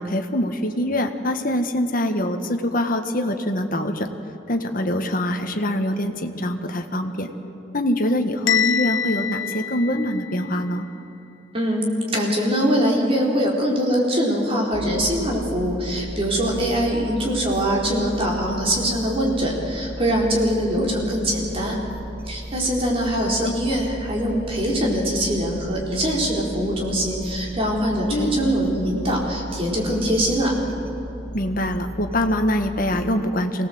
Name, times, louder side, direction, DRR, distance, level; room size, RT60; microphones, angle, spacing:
voice 1, 0.0-4.1 4.5-7.3 7.7-10.9 20.8-21.0 23.2-23.5 28.1-28.3 31.3-33.7, left 1 dB, 45° left, 5 dB, 1.5 m, -24 dB
Bell, 8.5-10.5, left 9 dB, 85° left, 1.3 m, -25 dB
voice 2, 11.5-11.9 12.1-21.8 22.3-30.5, equal, 30° right, -2 dB, 4.2 m, -23 dB
sound 1, 14.7-33.2, right 1 dB, 10° right, 1.5 m, -36 dB
24.5 x 18.5 x 7.8 m, 2.8 s
head